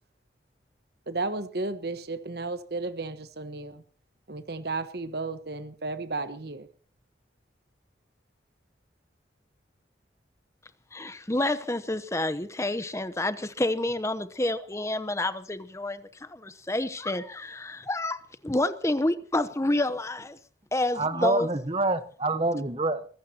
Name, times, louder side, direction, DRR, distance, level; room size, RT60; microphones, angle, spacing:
voice 1, 1.1-3.8 4.3-6.7, right 3 dB, 60° right, 1.2 m, -33 dB
voice 2, 10.9-16.0 16.3-18.2 18.4-20.4 20.7-21.5, left 1 dB, 15° left, 0.8 m, -28 dB
voice 3, 20.9-23.1, right 2 dB, 30° right, 1.1 m, -27 dB
24.0 x 15.0 x 2.9 m
head